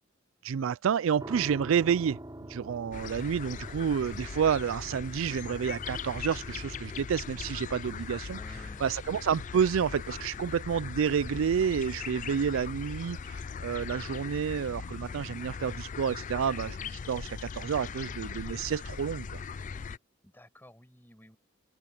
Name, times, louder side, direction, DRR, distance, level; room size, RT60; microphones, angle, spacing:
voice 1, 0.4-2.2 2.5-8.4 8.8-19.4, right 7 dB, 70° right, 0.4 m, -29 dB
sound 1, 1.2-16.1, right 1 dB, 20° right, 3.0 m, -49 dB
sound 2, 2.9-20.0, left 6 dB, 40° left, 0.4 m, -40 dB
voice 2, 8.4-8.9 20.2-21.4, equal, 10° left, 5.5 m, -52 dB
head